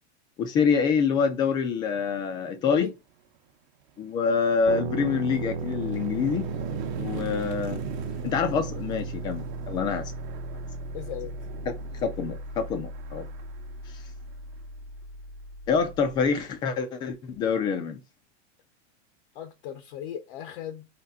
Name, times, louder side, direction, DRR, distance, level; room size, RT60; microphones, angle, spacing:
voice 1, 0.4-2.9 4.0-6.5 7.0-7.8 8.2-10.1 12.0-13.3 15.7-18.0, left 6 dB, 15° left, 0.3 m, -26 dB
sound 1, 3.2-3.4 3.8-14.6, right 8 dB, 40° right, 0.8 m, -42 dB
sound 2, 4.7-16.3, right 3 dB, 70° right, 1.0 m, -36 dB
voice 2, 10.9-11.4 19.3-20.9, left 10 dB, 55° left, 0.6 m, -37 dB
4.2 x 3.2 x 3.6 m
supercardioid pair, 155°, 34 cm